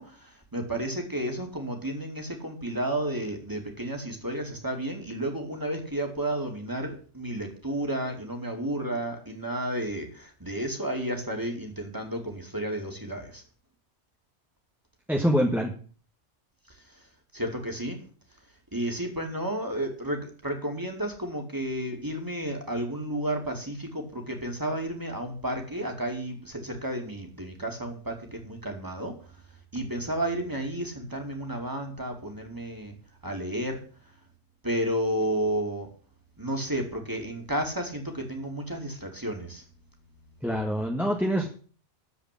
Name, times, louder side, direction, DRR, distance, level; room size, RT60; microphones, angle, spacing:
voice 1, 0.0-13.4 16.7-17.0 17.3-18.0 18.7-29.3 29.7-32.9 33.2-33.8 34.6-35.9 36.4-39.6, right 1 dB, 15° right, 3 dB, 2.7 m, -32 dB
voice 2, 15.1-15.7 40.4-41.5, equal, ahead, 1 dB, 1.4 m, -25 dB
13.5 x 5.1 x 8.5 m, 0.42 s
omnidirectional pair, 1.2 m